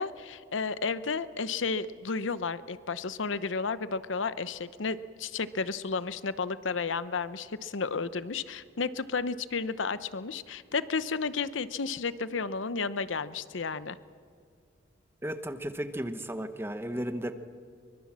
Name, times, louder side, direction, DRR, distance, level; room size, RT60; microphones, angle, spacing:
voice 1, 0.0-14.0, left 4 dB, 85° left, 15 dB, 0.8 m, -32 dB
voice 2, 15.2-17.3, equal, 10° right, 9 dB, 1.0 m, -34 dB
24.0 x 23.0 x 7.4 m, 2.2 s
head